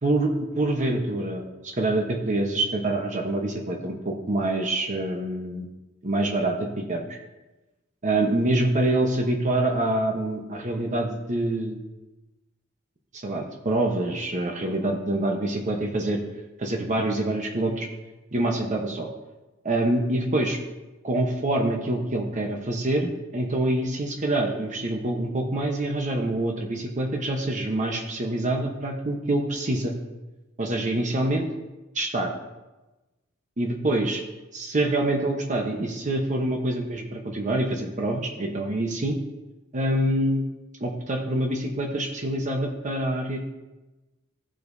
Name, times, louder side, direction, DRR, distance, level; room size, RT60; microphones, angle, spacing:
voice 1, 0.0-5.6 6.0-7.2 8.0-11.8 13.1-16.2 16.6-17.9 18.3-19.1 19.6-20.6 21.0-29.9 30.6-31.5 31.9-32.3 33.6-34.2 34.5-39.2 39.7-40.5 40.8-43.4, right 1 dB, 35° right, 1 dB, 1.0 m, -26 dB
16.0 x 7.6 x 2.7 m, 1.1 s
head